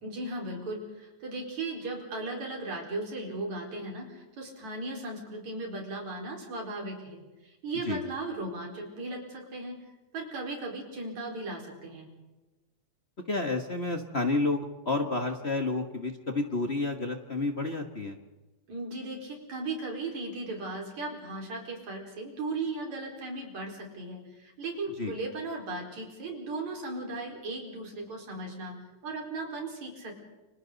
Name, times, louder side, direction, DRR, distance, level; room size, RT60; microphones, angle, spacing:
voice 1, 0.0-9.8 10.1-12.1 18.7-28.8 29.0-30.1, right 2 dB, 70° right, 0 dB, 5.9 m, -37 dB
voice 2, 13.3-18.2 25.0-25.1, left 3 dB, 40° left, 4 dB, 0.9 m, -30 dB
29.5 x 25.0 x 4.0 m, 1.1 s
omnidirectional pair, 3.3 m